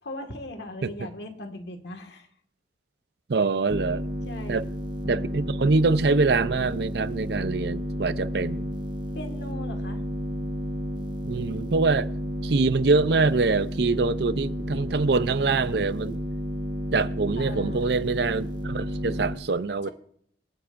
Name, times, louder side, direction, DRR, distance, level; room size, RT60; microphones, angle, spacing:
voice 1, 0.0-2.3 4.3-4.7 9.1-10.0 17.4-17.9 19.8-19.9, left 1 dB, 65° left, 1.8 m, -39 dB
voice 2, 3.3-4.1 4.5-4.6 5.1-8.7 11.2-12.1 12.4-16.2 16.9-19.9, right 3 dB, 60° right, 0.5 m, -24 dB
sound 1, 3.7-19.4, equal, 25° right, 1.2 m, -32 dB
26.5 x 9.5 x 2.6 m
head